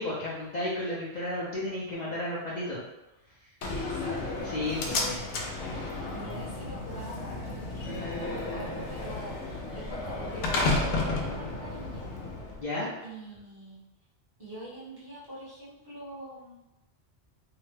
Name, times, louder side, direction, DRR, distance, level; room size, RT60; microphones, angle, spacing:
voice 1, 0.0-2.8 4.4-5.5 12.6-12.9, left 1 dB, 50° left, -7 dB, 0.6 m, -33 dB
Slam, 3.6-12.6, left 2 dB, 90° left, 0.9 m, -32 dB
voice 2, 3.7-4.2 4.5-5.3 6.1-12.1 13.0-13.8 14.4-16.6, right 1 dB, 25° right, -10 dB, 0.8 m, -44 dB
sound 1, 5.7-10.1, equal, 50° right, 1.1 m, -44 dB
2.7 x 2.1 x 3.1 m, 0.96 s
omnidirectional pair, 1.2 m